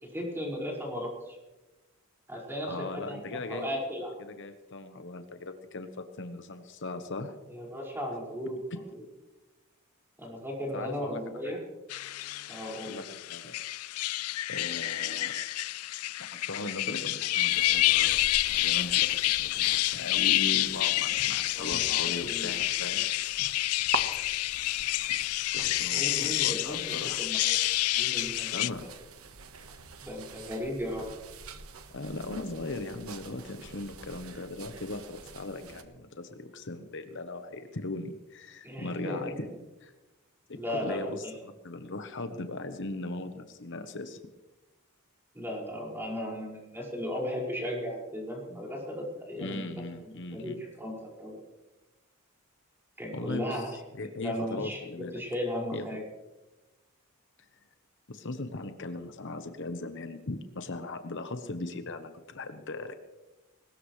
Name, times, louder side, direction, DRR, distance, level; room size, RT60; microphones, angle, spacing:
voice 1, 0.1-1.4 2.3-2.7 3.1-4.1 7.5-8.6 10.2-11.6 12.5-12.9 21.5-22.5 25.9-27.4 28.0-28.6 30.0-31.1 38.6-39.3 40.5-41.3 45.3-49.6 50.3-51.4 53.0-53.7 54.2-54.8 55.1-56.0, equal, 10° right, -3 dB, 5.5 m, -36 dB
voice 2, 2.6-3.7 4.2-7.4 10.7-11.6 12.8-13.6 14.5-15.4 16.2-18.2 18.5-23.1 25.5-27.3 28.5-29.0 31.9-39.5 39.8-39.9 40.5-41.3 41.6-44.2 49.4-50.6 53.1-55.2 55.7-55.8 58.1-62.9, left 2 dB, 55° left, 7 dB, 1.1 m, -39 dB
sound 1, 11.9-28.7, left 17 dB, 80° left, 0.4 m, -28 dB
sound 2, 17.5-35.8, right 4 dB, 70° right, 1.4 m, -45 dB
22.0 x 19.5 x 3.3 m, 1.1 s
head